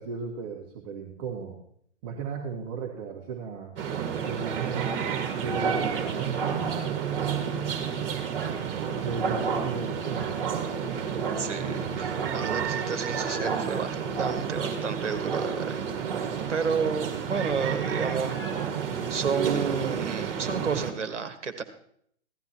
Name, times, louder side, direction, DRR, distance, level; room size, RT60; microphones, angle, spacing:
voice 1, 0.0-1.6 2.0-3.8 4.2-5.0 5.3-7.4 9.0-10.3, right 5 dB, 30° right, -1 dB, 2.0 m, -36 dB
sound 1, 3.8-20.9, right 7 dB, 50° right, 2.2 m, -30 dB
voice 2, 11.4-18.4 19.1-21.6, right 5 dB, 70° right, 8 dB, 1.6 m, -31 dB
16.5 x 13.0 x 3.0 m, 0.66 s
figure-of-eight pair, 120°, 37 cm